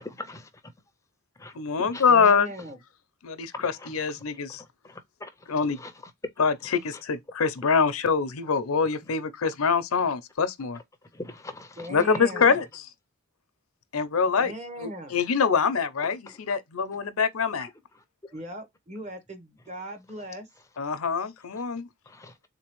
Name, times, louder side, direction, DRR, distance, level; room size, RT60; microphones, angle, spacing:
voice 1, 0.2-0.5 1.4-1.5 1.9-2.0 3.5-3.9 4.8-5.3 5.8-5.9 11.1-11.9 16.3-16.4 22.1-22.3, left 2 dB, 15° left, 0.5 m, -41 dB
voice 2, 1.5-2.5 3.2-4.6 5.5-5.8 6.4-10.8 11.9-12.6 13.9-14.5 14.8-17.7 20.8-21.9, left 5 dB, 85° left, 0.6 m, -24 dB
voice 3, 2.1-2.8 11.8-12.6 14.4-15.1 18.3-20.5, equal, 35° right, 0.9 m, -39 dB
3.7 x 2.8 x 3.0 m
head